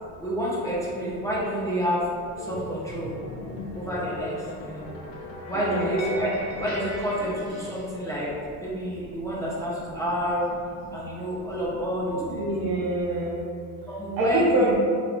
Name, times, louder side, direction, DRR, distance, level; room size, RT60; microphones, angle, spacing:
voice 1, 0.2-2.1 2.4-3.1 3.7-4.9 5.5-6.3 6.6-8.3 8.6-10.5 10.9-12.4 13.9-14.7, equal, 5° left, -8 dB, 0.6 m, -29 dB
sound 1, 2.4-7.9, equal, 55° left, 0.8 m, -37 dB
voice 2, 5.5-5.9 12.1-13.4 14.2-14.8, right 2 dB, 55° right, -3 dB, 0.9 m, -25 dB
3.4 x 3.0 x 2.5 m, 2.3 s
supercardioid pair, 100°, 44 cm